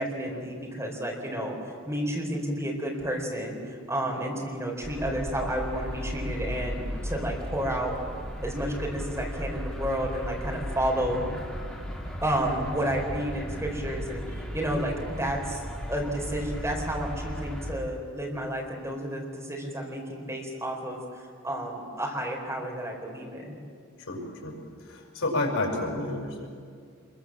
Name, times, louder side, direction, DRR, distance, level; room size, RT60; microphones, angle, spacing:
voice 1, 0.0-7.9 8.4-11.2 12.2-15.6 15.9-23.5, right 1 dB, 15° right, -1 dB, 4.2 m, -31 dB
sound 1, 4.8-17.7, equal, 5° left, 3.5 m, -36 dB
voice 2, 24.1-24.5 24.8-26.5, left 2 dB, 85° left, 0 dB, 5.9 m, -30 dB
26.0 x 22.5 x 7.5 m, 2.2 s
head